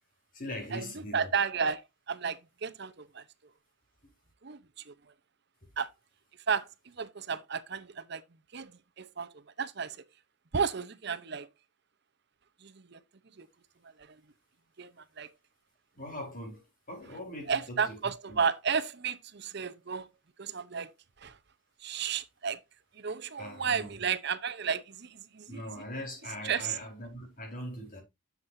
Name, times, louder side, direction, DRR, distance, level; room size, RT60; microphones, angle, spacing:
voice 1, 0.3-1.3 4.0-4.1 15.9-18.0 18.3-18.4 23.4-24.0 25.5-28.0, left 1 dB, 40° left, 4.3 m, -41 dB
voice 2, 1.1-3.2 4.4-4.9 5.8-5.9 6.5-8.2 8.5-8.7 9.0-10.0 10.5-11.5 12.6-13.0 13.4-13.5 14.0-14.2 14.8-15.3 17.5-20.1 20.4-20.9 21.2-21.4 21.8-22.6 22.9-25.6 26.4-26.8, right 6 dB, 55° right, 0.8 m, -33 dB
10.5 x 7.3 x 2.6 m
head